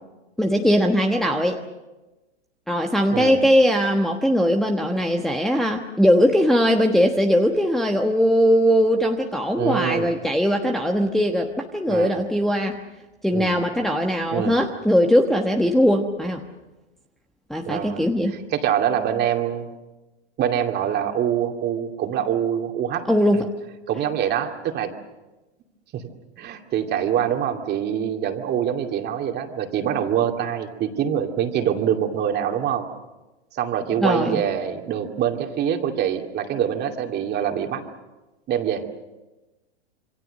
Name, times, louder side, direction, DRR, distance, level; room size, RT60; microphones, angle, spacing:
voice 1, 0.4-1.6 2.7-12.8 13.2-16.4 17.5-18.3 23.1-23.4 34.0-34.4, equal, ahead, 1 dB, 1.2 m, -20 dB
voice 2, 3.1-3.4 9.5-10.2 11.9-12.2 13.3-13.6 14.3-14.6 17.7-19.7 20.4-23.1 23.9-24.9 25.9-26.1 26.4-32.9 33.5-37.8 38.5-38.8, right 9 dB, 30° right, 4 dB, 2.5 m, -25 dB
27.5 x 24.0 x 6.6 m, 1.1 s
hypercardioid pair, 120°, 34 cm